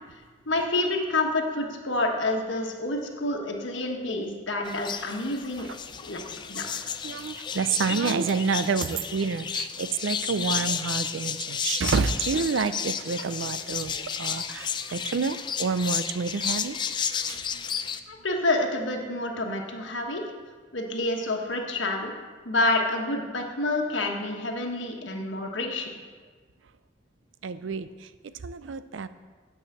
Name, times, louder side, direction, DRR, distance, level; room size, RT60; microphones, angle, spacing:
voice 1, 0.5-5.7 6.0-6.2 6.5-6.7 18.1-20.2 20.7-22.1 22.4-25.9, left 2 dB, 80° left, 1 dB, 1.3 m, -28 dB
sound 1, 4.6-18.0, left 7 dB, 25° left, 0.3 m, -32 dB
voice 2, 7.0-16.8 17.3-17.6 27.4-27.9 28.4-29.1, right 5 dB, 80° right, 13 dB, 0.5 m, -28 dB
9.1 x 4.9 x 7.2 m, 1.5 s
head